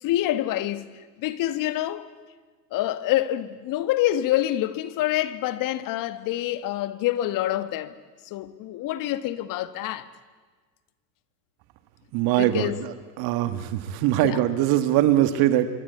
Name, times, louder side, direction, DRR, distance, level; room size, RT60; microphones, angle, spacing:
voice 1, 0.0-2.1 2.7-7.9 8.2-10.1 12.2-12.8 14.2-14.4, left 14 dB, 40° left, 1.6 m, -27 dB
voice 2, 12.1-12.7 13.2-15.7, right 13 dB, 45° right, 2.0 m, -22 dB
26.5 x 24.5 x 8.5 m
hypercardioid pair, 95°, 50 cm